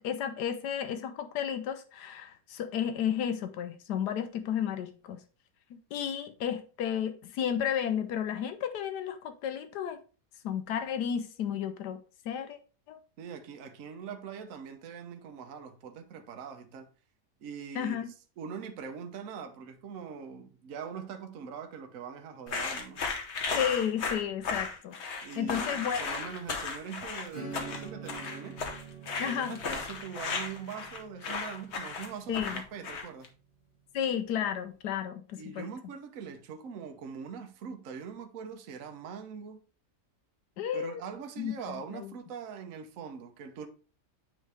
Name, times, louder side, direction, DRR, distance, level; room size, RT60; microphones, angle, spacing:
voice 1, 0.0-5.2 5.7-10.0 10.4-12.0 12.2-12.6 12.9-13.0 17.7-18.1 23.5-24.9 25.4-26.1 29.2-29.6 32.3-32.6 33.9-35.7 40.6-41.0 41.4-42.1, left 9 dB, 80° left, 1.2 m, -32 dB
voice 2, 13.2-16.9 17.4-18.0 18.4-23.0 25.2-28.6 29.2-33.3 35.4-39.6 40.7-43.7, right 6 dB, 60° right, 1.1 m, -42 dB
sound 1, 22.5-33.3, left 4 dB, 50° left, 1.0 m, -35 dB
Acoustic guitar / Strum, 27.3-33.5, right 5 dB, 65° left, 4.0 m, -47 dB
9.0 x 3.2 x 3.3 m
omnidirectional pair, 1.8 m